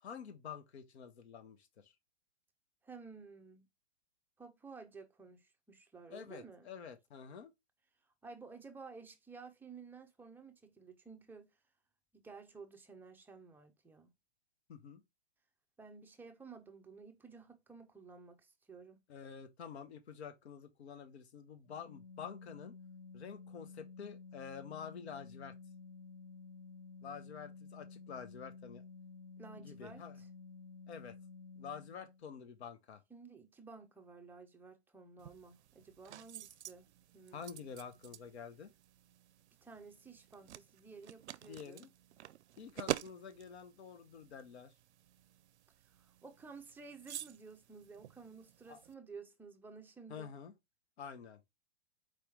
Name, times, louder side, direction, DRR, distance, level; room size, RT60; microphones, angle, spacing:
voice 1, 0.0-1.9 6.1-7.5 14.7-15.0 19.1-22.7 23.1-25.5 27.0-28.8 29.6-30.2 30.9-31.2 31.6-33.0 37.3-38.7 41.5-41.9 42.6-44.7 48.7-48.8 50.1-50.5 51.0-51.4, left 7 dB, 75° left, 1.0 m, -48 dB
voice 2, 2.8-3.7 4.4-6.7 8.2-11.5 12.1-14.1 15.8-19.0 29.4-30.3 33.1-36.9 37.1-37.7 39.6-41.8 46.0-50.3, right 4 dB, 5° right, 0.6 m, -53 dB
Organ, 21.7-32.2, left 4 dB, 55° left, 0.7 m, -53 dB
sound 1, 35.2-48.9, right 13 dB, 85° right, 0.5 m, -48 dB
4.7 x 3.0 x 3.4 m
hypercardioid pair, 125°, 33 cm